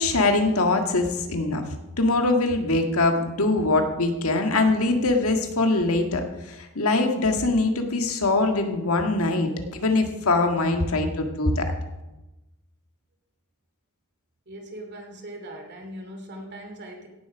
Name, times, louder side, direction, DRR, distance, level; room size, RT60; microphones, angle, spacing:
voice 1, 0.0-1.6 2.0-11.7, left 2 dB, 70° left, 4 dB, 1.8 m, -23 dB
voice 2, 14.5-17.1, right 1 dB, 50° right, 3 dB, 2.9 m, -40 dB
17.0 x 8.2 x 6.1 m, 1.0 s
head